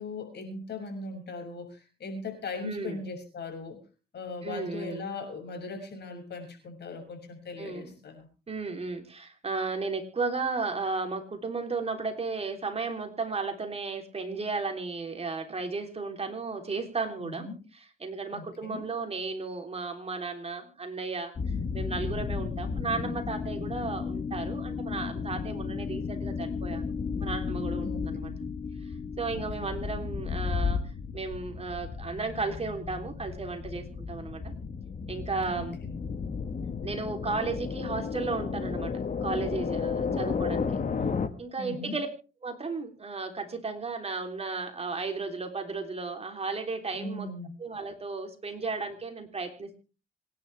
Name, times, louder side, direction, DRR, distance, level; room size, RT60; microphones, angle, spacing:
voice 1, 0.0-3.8 4.1-8.3 17.2-17.6 18.3-18.8 21.4-21.7 27.8-28.4 29.3-29.7 35.5-35.9 41.6-42.0 47.0-47.5, left 3 dB, 60° left, 4 dB, 6.8 m, -39 dB
voice 2, 2.6-3.0 4.4-5.1 7.6-8.0 8.5-17.5 17.7-21.3 21.7-26.8 27.2-28.3 28.8-30.8 31.1-34.5 35.1-35.8 36.8-38.9 39.2-40.7 41.4-42.1 42.4-47.3 47.6-49.7, right 4 dB, 30° right, 4 dB, 3.5 m, -34 dB
sound 1, 21.4-41.3, left 5 dB, 40° left, 1.6 m, -33 dB
26.0 x 10.5 x 3.5 m, 0.34 s
cardioid pair, 90°, 20 cm